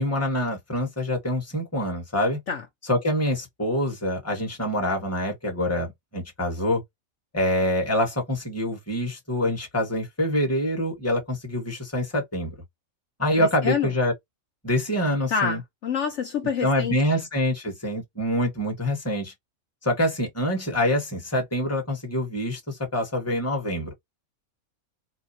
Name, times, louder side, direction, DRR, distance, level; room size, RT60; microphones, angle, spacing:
voice 1, 0.0-2.4 2.9-6.8 7.3-12.5 13.2-14.1 14.6-15.6 16.6-19.3 19.8-23.9, left 1 dB, 10° left, 1.2 m, -25 dB
voice 2, 13.4-13.9 15.3-17.2, left 6 dB, 60° left, 1.0 m, -27 dB
4.1 x 2.3 x 2.7 m
omnidirectional pair, 1.5 m